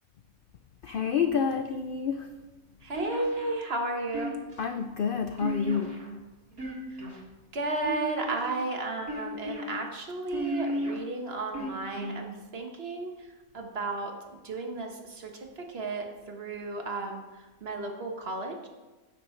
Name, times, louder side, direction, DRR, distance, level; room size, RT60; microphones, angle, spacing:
voice 1, 0.8-2.3 4.6-5.9, left 6 dB, 75° left, 7 dB, 0.5 m, -28 dB
voice 2, 2.8-4.4 6.9-7.0 7.5-13.3 13.5-18.7, right 2 dB, 45° right, 2 dB, 1.3 m, -34 dB
sound 1, 2.9-3.6 4.1-4.7 5.4-6.1 6.5-7.2 7.8-8.5 9.1-9.7 10.3-11.0 11.5-12.2, right 1 dB, 90° right, 2.5 m, -34 dB
16.0 x 6.1 x 3.2 m, 1.2 s
omnidirectional pair, 1.5 m